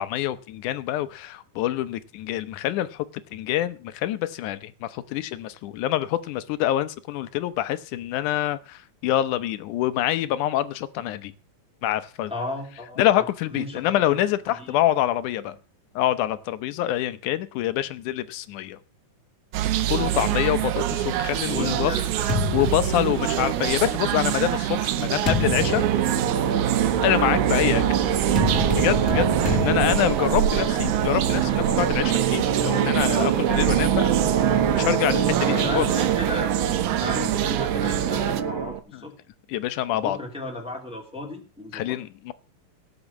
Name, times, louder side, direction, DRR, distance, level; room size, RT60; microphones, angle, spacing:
voice 1, 0.0-11.3 11.8-12.3 13.0-15.6 16.0-18.8 19.9-21.9 22.5-26.1 27.0-27.8 28.8-34.1 34.7-35.9 38.9-39.0 39.5-40.2 41.7-42.3, left 13 dB, 80° left, 13 dB, 2.3 m, -26 dB
voice 2, 12.3-13.3 13.5-13.9 14.6-14.8 21.5-22.2 23.4-23.6 30.3-30.7 35.5-36.5 37.0-39.1 39.9-42.0, left 2 dB, ahead, 0 dB, 2.3 m, -35 dB
sound 1, 19.5-38.4, right 13 dB, 80° right, 2.2 m, -26 dB
sound 2, 21.0-23.8 24.5-31.5, left 4 dB, 30° left, 2.1 m, -31 dB
sound 3, 25.5-38.8, right 8 dB, 60° right, 1.3 m, -24 dB
17.5 x 6.1 x 7.2 m, 0.38 s
omnidirectional pair, 3.5 m